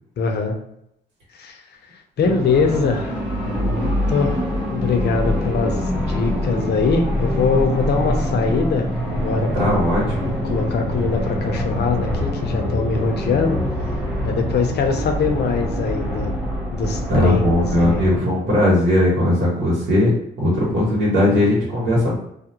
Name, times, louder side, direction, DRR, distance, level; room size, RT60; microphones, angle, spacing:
voice 1, 0.2-0.6 1.3-1.6 2.2-3.2 3.4-4.4 4.7-9.8 10.5-13.6 14.2-16.3 16.7-18.0, left 4 dB, 55° left, 4 dB, 0.6 m, -22 dB
sound 1, 2.2-18.2, left 1 dB, 5° right, 0.9 m, -24 dB
voice 2, 9.5-10.3 17.1-20.1 20.4-22.2, left 1 dB, 70° right, -7 dB, 1.1 m, -18 dB
2.4 x 2.0 x 2.9 m, 0.75 s
cardioid pair, 90°, 20 cm